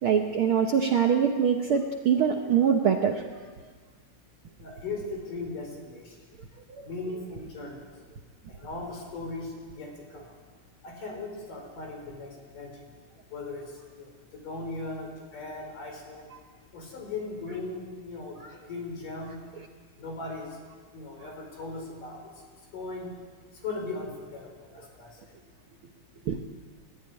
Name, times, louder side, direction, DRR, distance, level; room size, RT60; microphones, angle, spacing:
voice 1, 0.0-3.2 6.8-6.9 26.3-26.4, right 7 dB, 65° right, 3 dB, 1.3 m, -23 dB
voice 2, 4.6-6.2 6.8-7.9 8.5-10.4 10.8-12.9 13.3-16.3 16.7-19.4 20.0-20.6 20.9-23.1 23.5-25.2, left 3 dB, 80° left, 1 dB, 6.1 m, -38 dB
21.0 x 13.5 x 9.9 m, 1.5 s
omnidirectional pair, 3.7 m